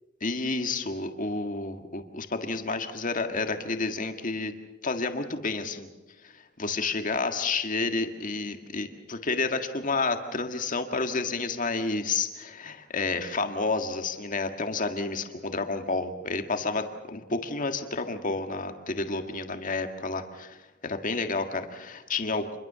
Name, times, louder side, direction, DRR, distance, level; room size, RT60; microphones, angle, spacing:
voice 1, 0.2-4.5 4.8-5.9 6.2-22.6, left 3 dB, 40° left, 6 dB, 1.9 m, -30 dB
27.0 x 22.0 x 6.9 m, 1.1 s
head